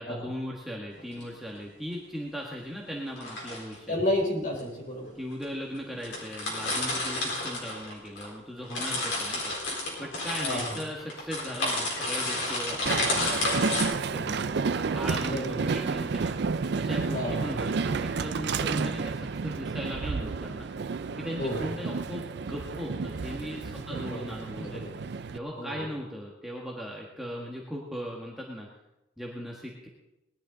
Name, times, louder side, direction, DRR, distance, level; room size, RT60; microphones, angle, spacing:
voice 1, 0.0-3.9 5.1-9.5 10.0-16.3 16.7-20.7 21.2-24.8 25.3-28.7 29.2-29.9, equal, ahead, -3 dB, 1.4 m, -38 dB
sound 1, 1.0-1.2 3.1-3.7 4.6-4.7 5.4-5.5 5.7-5.8 6.0-8.3 8.6-13.8, left 2 dB, 65° left, 4.2 m, -31 dB
voice 2, 3.9-5.1 10.4-10.8 15.2-15.5 17.1-17.6 21.4-21.7 23.7-24.2 24.6-24.9 25.6-25.9, left 1 dB, 40° left, -2 dB, 4.3 m, -31 dB
Train, 12.9-25.4, right 4 dB, 55° right, 0.4 m, -31 dB
19.5 x 11.0 x 3.9 m, 0.95 s
head